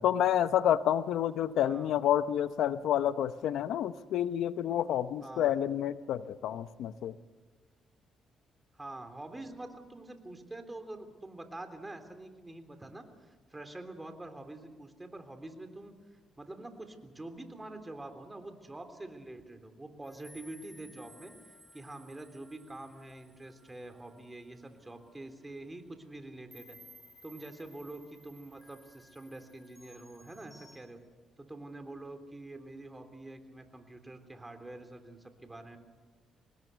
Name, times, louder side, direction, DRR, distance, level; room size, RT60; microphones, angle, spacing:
voice 1, 0.0-7.2, left 10 dB, 80° left, 13 dB, 0.8 m, -29 dB
voice 2, 8.7-21.3 21.7-26.8 27.2-31.0 31.4-35.8, right 2 dB, 15° right, 7 dB, 3.4 m, -46 dB
sound 1, 20.0-25.1 25.6-25.8 26.5-30.8, equal, 5° left, 6.0 m, -58 dB
25.0 x 20.5 x 6.9 m, 1.4 s
cardioid pair, 90°, 0 cm